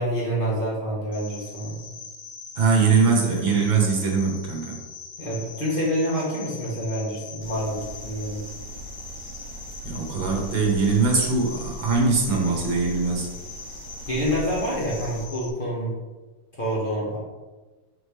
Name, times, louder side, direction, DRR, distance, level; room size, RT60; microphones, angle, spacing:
voice 1, 0.0-1.8 5.2-8.4 14.1-16.0 16.5-17.2, equal, 30° left, -6 dB, 1.3 m, -27 dB
Cricket, 1.1-15.5, left 5 dB, 85° left, 1.7 m, -42 dB
voice 2, 2.6-4.8 9.8-13.3, right 4 dB, 80° right, -1 dB, 2.2 m, -22 dB
sound 1, 7.4-15.3, right 1 dB, 65° right, 1.4 m, -40 dB
6.1 x 5.5 x 3.3 m, 1.2 s
omnidirectional pair, 2.1 m